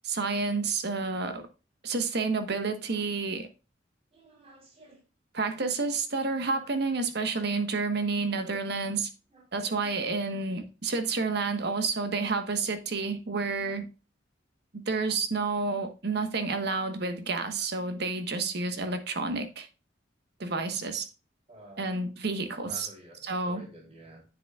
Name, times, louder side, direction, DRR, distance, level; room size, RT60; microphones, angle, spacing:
voice 1, 0.0-1.5 1.8-3.5 5.3-9.1 9.5-13.9 14.7-19.7 20.4-21.1 21.8-22.9 23.3-23.6, right 4 dB, 60° right, 1.2 m, -30 dB
voice 2, 2.9-3.2 4.1-5.0 9.3-10.0 21.5-22.0 22.6-24.3, equal, 35° right, 3.5 m, -51 dB
9.6 x 7.9 x 2.3 m
head